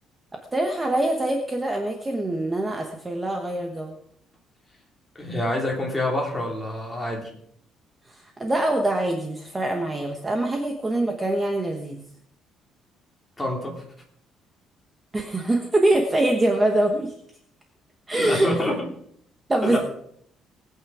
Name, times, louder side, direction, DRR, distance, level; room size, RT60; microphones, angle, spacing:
voice 1, 0.5-3.9 8.0-12.0 15.1-17.1 18.1-18.5 19.5-19.8, right 1 dB, 15° right, 3 dB, 1.2 m, -24 dB
voice 2, 5.1-7.3 13.4-13.8 18.2-18.8 19.6-19.8, left 1 dB, 10° left, -2 dB, 3.1 m, -27 dB
20.0 x 8.8 x 4.9 m, 0.68 s
cardioid pair, 175°, 0 cm